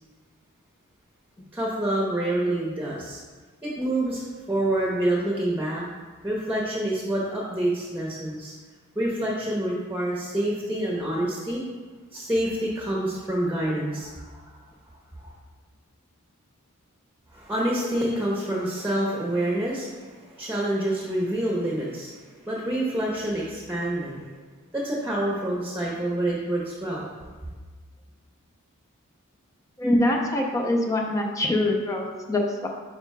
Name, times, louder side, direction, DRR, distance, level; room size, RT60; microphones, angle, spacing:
voice 1, 1.5-3.2 3.6-5.9 6.2-8.5 8.9-11.6 12.1-14.4 15.2-15.3 17.3-22.1 22.5-24.2 24.7-27.3, right 1 dB, 10° right, -4 dB, 0.9 m, -27 dB
voice 2, 29.8-32.7, left 1 dB, 15° left, 0 dB, 0.6 m, -24 dB
9.3 x 4.9 x 2.3 m, 1.4 s
head